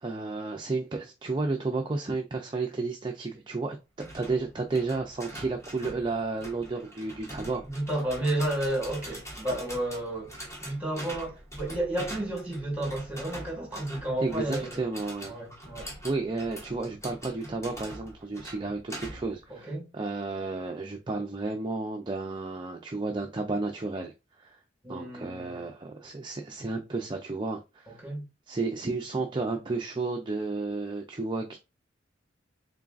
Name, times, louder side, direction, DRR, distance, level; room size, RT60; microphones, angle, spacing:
voice 1, 0.0-7.7 14.2-15.3 16.0-24.1 24.4-24.6 24.9-27.9 28.5-31.6, right 3 dB, 25° right, 0.5 m, -32 dB
sound 1, 4.0-19.4, right 1 dB, 15° left, 1.5 m, -44 dB
voice 2, 7.6-10.3 10.6-14.8 15.2-15.9 19.5-19.9 24.8-25.6 27.9-28.2, right 1 dB, 10° right, 2.1 m, -32 dB
3.8 x 3.6 x 2.5 m
head